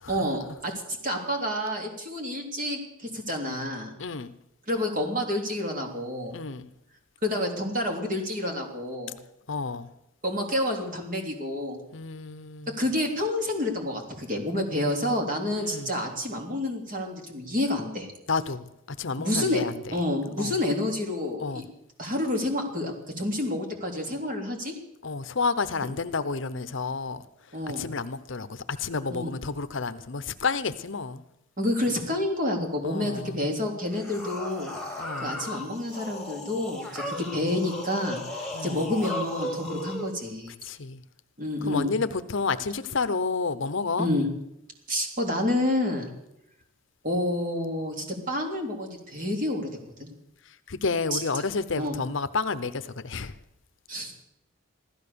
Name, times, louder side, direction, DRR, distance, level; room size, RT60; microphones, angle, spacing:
voice 1, 0.1-3.9 4.7-6.4 7.2-9.1 10.2-11.8 12.8-18.1 19.2-19.6 19.9-21.6 22.0-24.7 27.5-27.9 29.1-29.3 31.6-34.7 35.2-40.5 41.4-41.9 44.0-44.3 44.9-46.1 47.0-49.7 50.0-50.1 51.1-51.2 51.7-52.0 53.9-54.1, left 1 dB, 40° right, 3.2 m, -29 dB
voice 2, 4.0-4.3 6.3-6.7 9.5-9.9 11.9-12.8 15.6-15.9 18.3-20.0 20.4-20.6 21.4-21.6 25.0-27.2 27.8-31.2 32.8-33.6 35.0-35.4 38.5-38.9 40.6-41.0 41.6-44.1 50.7-53.4, left 4 dB, 65° left, 0.8 m, -30 dB
sound 1, 33.8-40.1, left 1 dB, ahead, 2.8 m, -36 dB
15.5 x 13.0 x 6.9 m
head